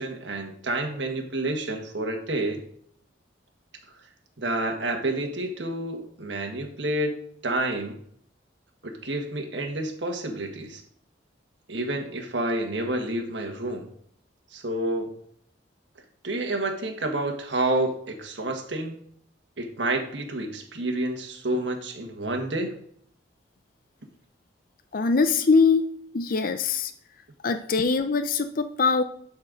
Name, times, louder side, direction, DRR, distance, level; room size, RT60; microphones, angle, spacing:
voice 1, 0.0-2.6 4.4-7.1 7.4-8.0 8.8-10.8 11.7-13.9 14.5-15.1 16.2-19.0 19.6-22.7, right 1 dB, 70° right, 3 dB, 1.6 m, -29 dB
voice 2, 24.9-25.8 26.1-26.9 27.4-29.0, left 4 dB, 50° left, 8 dB, 0.5 m, -22 dB
11.5 x 4.4 x 5.1 m, 0.65 s
head